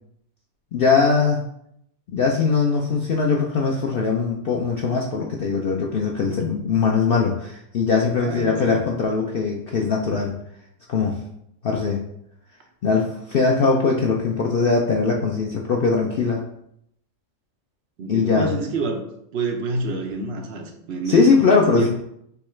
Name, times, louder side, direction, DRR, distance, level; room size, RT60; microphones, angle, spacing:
voice 1, 0.7-1.4 2.1-10.4 10.9-11.2 11.6-12.0 12.8-16.4 18.1-18.5 21.0-21.9, left 4 dB, 80° left, 0 dB, 0.5 m, -21 dB
voice 2, 8.2-8.8 18.0-19.0 19.3-21.9, right 3 dB, 60° right, 3 dB, 0.7 m, -28 dB
6.6 x 2.3 x 3.2 m, 0.75 s
omnidirectional pair, 1.5 m